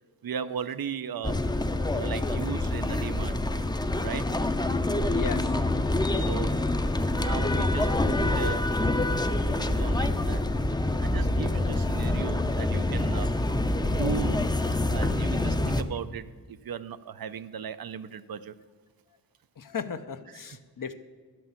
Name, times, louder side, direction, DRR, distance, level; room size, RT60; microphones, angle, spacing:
voice 1, 0.2-1.4 1.9-3.4 4.0-4.3 6.2-6.6 7.1-8.7 9.6-10.5 11.0-13.3 13.8-14.5 14.9-18.5, right 7 dB, 85° right, 13 dB, 0.6 m, -36 dB
sound 1, 1.2-15.8, left 2 dB, 10° left, 0.5 m, -26 dB
voice 2, 5.1-5.6 15.0-15.4 19.6-20.9, left 6 dB, 70° left, 10 dB, 0.7 m, -37 dB
11.5 x 6.1 x 7.0 m, 1.5 s
wide cardioid pair, 80°, 35 cm